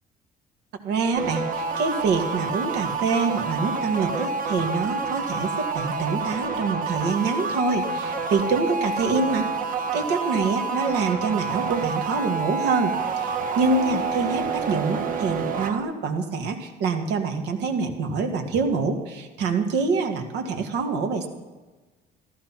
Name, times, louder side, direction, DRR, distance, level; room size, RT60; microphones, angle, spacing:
voice 1, 0.8-9.5 9.9-21.3, right 4 dB, 90° right, 4 dB, 2.1 m, -25 dB
sound 1, 1.2-15.8, right 4 dB, 55° right, 1.5 m, -28 dB
14.5 x 13.0 x 5.9 m, 1.2 s
cardioid pair, 110°, 17 cm